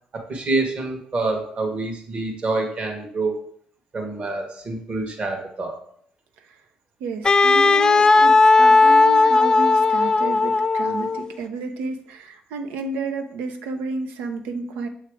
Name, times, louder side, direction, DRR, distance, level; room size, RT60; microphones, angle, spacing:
voice 1, 0.3-3.4 3.9-5.7, right 3 dB, 45° right, 2 dB, 1.5 m, -26 dB
voice 2, 7.0-14.9, right 3 dB, 85° right, 6 dB, 0.7 m, -31 dB
Wind instrument woodwind instrument, 7.2-11.3, left 3 dB, 25° left, 0.3 m, -16 dB
7.0 x 3.2 x 4.9 m, 0.63 s
supercardioid pair, 75°, 3 cm